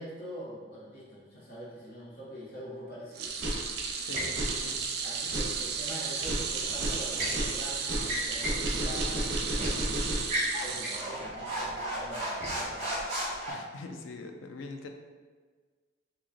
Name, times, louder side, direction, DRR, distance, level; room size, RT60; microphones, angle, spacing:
voice 1, 0.0-3.3 5.0-10.0 10.6-13.0, equal, 50° left, -8 dB, 1.4 m, -44 dB
sound 1, 3.1-11.6 12.0-12.2 13.4-13.5, right 6 dB, 55° right, 0.3 m, -35 dB
sound 2, 3.3-10.4, right 1 dB, 80° right, 0.9 m, -33 dB
voice 2, 3.9-4.8 13.5-14.9, left 3 dB, 85° left, 5 dB, 0.4 m, -43 dB
sound 3, 4.1-4.4 6.6-7.4 8.0-8.7 9.0-9.1 9.6-9.8 10.2-13.5, equal, 35° right, 1.0 m, -34 dB
3.0 x 2.8 x 3.7 m, 1.5 s
head